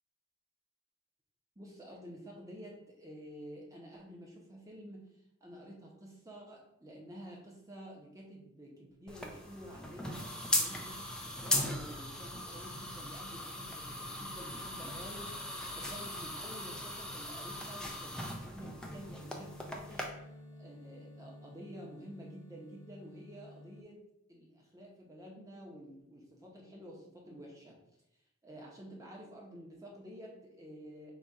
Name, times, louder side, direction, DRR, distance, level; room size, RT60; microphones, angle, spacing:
voice 1, 1.6-5.1 5.4-10.3 10.6-20.1 20.6-24.0 24.3-27.8 28.4-31.1, equal, 15° right, -2 dB, 0.9 m, -50 dB
sound 1, 9.1-20.0, left 1 dB, 5° left, 0.4 m, -38 dB
sound 2, 18.8-23.8, left 1 dB, 75° left, 0.7 m, -52 dB
4.0 x 2.4 x 4.7 m, 0.82 s
head